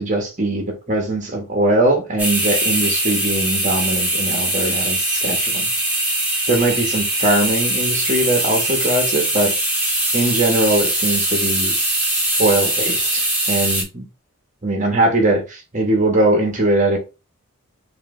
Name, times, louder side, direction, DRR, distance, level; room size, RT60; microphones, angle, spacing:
voice 1, 0.0-5.7 6.5-9.5 10.1-11.7 12.4-14.0 14.6-17.0, right 2 dB, 35° right, 1.2 m, -20 dB
sound 1, 2.2-13.8, right 1 dB, 5° right, 1.6 m, -21 dB
4.9 x 2.8 x 3.2 m
head